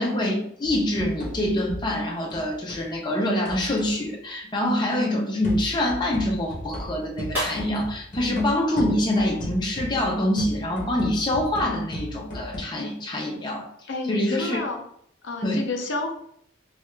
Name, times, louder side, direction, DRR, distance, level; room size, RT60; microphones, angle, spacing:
voice 1, 0.0-13.7 14.1-14.6 15.4-15.7, left 1 dB, 20° left, -1 dB, 0.6 m, -25 dB
sound 1, 0.6-2.9 3.4-4.0 5.4-12.6, equal, 40° left, 1.0 m, -36 dB
sound 2, 7.2-9.7, equal, 10° right, 1.1 m, -39 dB
voice 2, 13.9-14.8 15.2-16.1, left 2 dB, 70° left, 3 dB, 0.6 m, -30 dB
3.3 x 2.3 x 3.2 m, 0.66 s
head